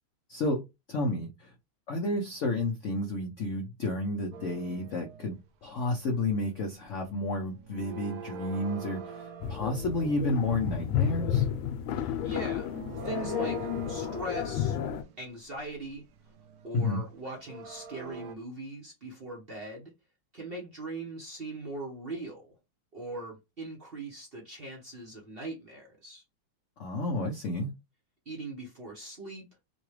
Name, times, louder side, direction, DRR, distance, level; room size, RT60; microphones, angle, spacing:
voice 1, 0.3-0.6 0.9-1.5 1.9-11.4 16.7-17.0 26.8-27.7, left 2 dB, 65° left, 0.7 m, -31 dB
sound 1, 4.3-5.4 5.7-6.0 6.3-7.1 7.3-10.4 12.0-12.1 12.4-18.4, right 6 dB, 75° right, 0.9 m, -44 dB
sound 2, 9.4-15.0, left 9 dB, 85° left, 1.3 m, -31 dB
voice 2, 12.0-14.8 15.2-16.0 16.6-19.9 20.3-22.5 22.9-26.2 28.3-29.5, right 2 dB, 40° right, 0.9 m, -40 dB
3.9 x 2.3 x 3.1 m
omnidirectional pair, 2.1 m